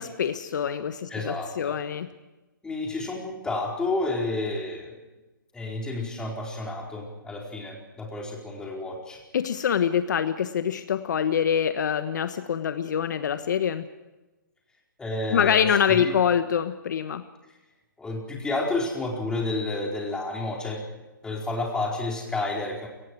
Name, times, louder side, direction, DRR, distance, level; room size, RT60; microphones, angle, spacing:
voice 1, 0.0-2.1 9.3-13.9 15.3-17.2, left 8 dB, 60° left, 10 dB, 1.3 m, -25 dB
voice 2, 1.1-1.8 2.6-5.0 5.5-9.2 15.0-16.1 17.5-17.6 18.0-20.8 21.2-22.9, left 2 dB, 5° left, -1 dB, 4.4 m, -30 dB
28.5 x 19.5 x 4.7 m, 1.1 s
hypercardioid pair, 145°, 11 cm